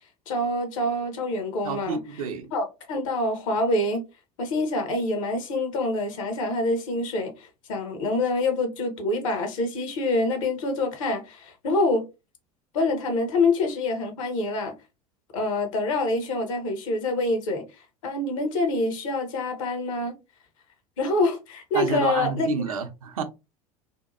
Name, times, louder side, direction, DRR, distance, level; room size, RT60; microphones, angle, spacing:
voice 1, 0.3-2.0 2.5-4.0 4.4-12.0 12.7-14.7 15.3-17.6 18.0-20.1 21.0-22.5, left 2 dB, 65° left, 0.8 m, -26 dB
voice 2, 1.6-2.5 21.7-23.2, right 6 dB, 75° right, 0.5 m, -29 dB
2.7 x 2.2 x 2.5 m
figure-of-eight pair, 70°, 18 cm